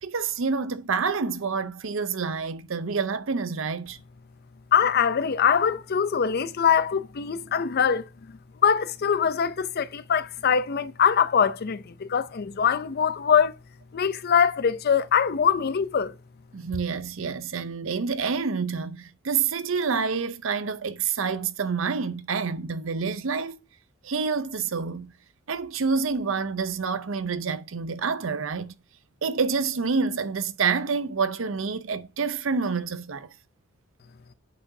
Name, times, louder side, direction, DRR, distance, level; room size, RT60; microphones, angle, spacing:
voice 1, 0.0-4.0 16.5-23.6 24.0-25.1 25.5-28.7 29.2-33.3, right 5 dB, 70° right, 0.6 m, -28 dB
voice 2, 4.7-8.0 8.6-13.5 13.9-16.1, left 7 dB, 50° left, 0.5 m, -23 dB
8.3 x 6.0 x 2.7 m
head